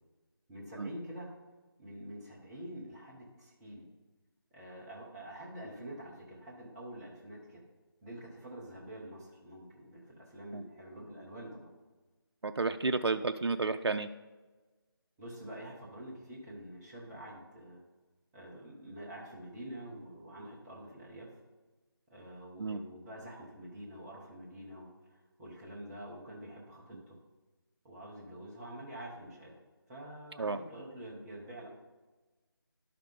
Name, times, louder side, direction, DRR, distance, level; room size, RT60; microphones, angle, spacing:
voice 1, 0.5-1.3 1.8-3.8 4.5-7.6 8.0-11.7 15.2-17.8 18.3-21.4 22.1-27.2 27.8-29.5 29.9-31.7, right 1 dB, 5° right, -6 dB, 0.6 m, -47 dB
voice 2, 12.4-14.1 22.6-22.8 30.4-30.6, right 3 dB, 80° right, 8 dB, 0.4 m, -31 dB
11.5 x 5.6 x 3.7 m, 1.2 s
figure-of-eight pair, 160°, 13 cm